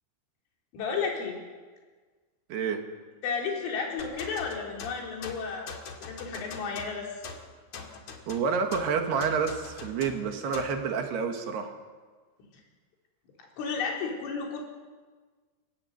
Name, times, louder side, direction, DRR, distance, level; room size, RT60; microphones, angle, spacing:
voice 1, 0.7-1.4 3.2-5.8 6.0-7.1 12.4-12.5 13.4-14.6, left 5 dB, 90° left, -1 dB, 6.4 m, -32 dB
voice 2, 2.5-2.8 8.3-11.7, right 6 dB, 65° right, 4 dB, 3.5 m, -29 dB
sound 1, 4.0-10.8, left 5 dB, 50° left, 2.5 m, -43 dB
28.0 x 17.0 x 8.0 m, 1.4 s
omnidirectional pair, 5.5 m